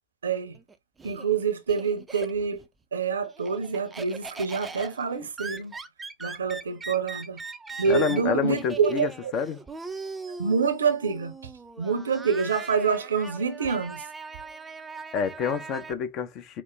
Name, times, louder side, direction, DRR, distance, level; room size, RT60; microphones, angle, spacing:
voice 1, 0.2-0.6 1.0-2.6 2.9-5.7 6.2-7.4 7.8-9.3 10.4-11.5 11.8-14.0, right 6 dB, 70° right, 0.7 m, -26 dB
Laughter, 0.5-2.7 3.0-15.9, right 4 dB, 10° right, 0.5 m, -40 dB
voice 2, 7.9-9.6 15.1-16.6, left 6 dB, 35° left, 0.7 m, -28 dB
4.9 x 2.0 x 3.4 m
figure-of-eight pair, 90°, 0 cm